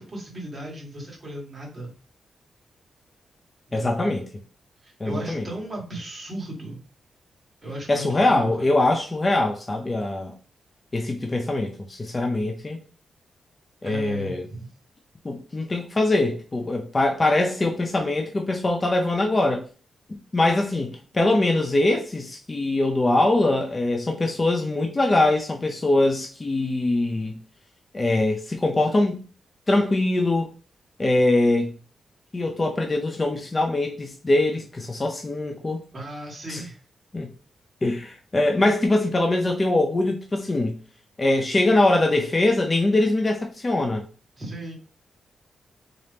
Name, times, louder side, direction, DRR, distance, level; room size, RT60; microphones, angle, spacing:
voice 1, 0.0-1.9 3.8-4.1 4.8-6.8 7.6-8.7 13.8-14.7 35.9-36.8 44.4-44.8, right 1 dB, 20° right, 1.4 m, -36 dB
voice 2, 3.7-4.2 5.0-5.4 7.9-10.3 10.9-12.8 13.8-14.4 15.2-19.6 20.3-27.3 27.9-29.2 29.7-30.5 31.0-31.7 32.3-35.8 36.5-36.6 37.1-37.3 37.8-40.8 41.2-44.0, left 2 dB, 25° left, 0.5 m, -22 dB
3.8 x 2.8 x 3.4 m
wide cardioid pair, 140°, 0 cm